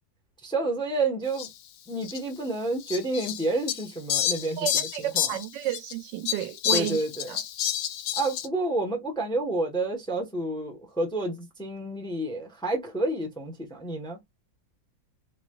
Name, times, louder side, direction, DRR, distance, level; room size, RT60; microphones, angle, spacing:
voice 1, 0.4-1.5 1.9-4.7 5.0-5.4 6.7-7.3 8.2-14.2, right 2 dB, 5° left, 0.8 m, -29 dB
Fowl, 1.4-1.5 2.0-2.2 2.9-5.9 6.3-8.5, left 10 dB, 70° left, 1.1 m, -29 dB
voice 2, 4.6-7.0 7.3-7.4, right 13 dB, 80° right, 1.2 m, -32 dB
3.7 x 3.2 x 2.3 m
omnidirectional pair, 2.0 m